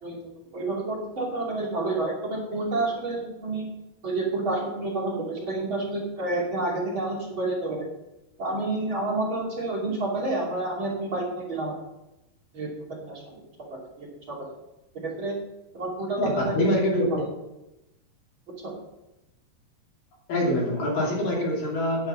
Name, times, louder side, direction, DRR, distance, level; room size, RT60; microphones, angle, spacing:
voice 1, 0.0-3.7 4.0-7.9 8.4-11.8 12.5-12.7 13.0-13.2 13.7-14.5 15.0-15.4 15.7-16.8 17.1-17.3 18.6-18.7, right 2 dB, 35° right, -3 dB, 3.0 m, -29 dB
voice 2, 16.2-17.1 20.3-22.1, left 1 dB, 55° left, -3 dB, 4.4 m, -25 dB
10.5 x 10.0 x 5.5 m, 0.93 s
omnidirectional pair, 4.7 m